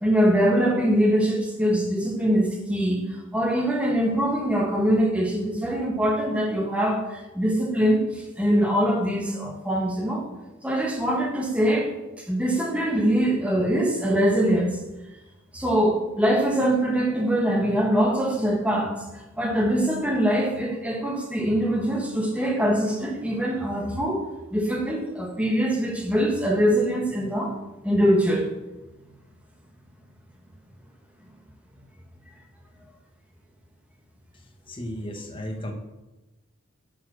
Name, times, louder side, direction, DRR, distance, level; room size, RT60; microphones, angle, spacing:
voice 1, 0.0-3.0 3.3-10.3 10.6-11.9 12.2-14.8 15.5-18.9 19.4-24.2 24.5-27.5 27.8-28.5, equal, 5° right, 0 dB, 1.6 m, -23 dB
voice 2, 34.7-35.7, left 1 dB, 25° left, 3 dB, 1.3 m, -34 dB
7.1 x 7.0 x 6.3 m, 1.1 s
head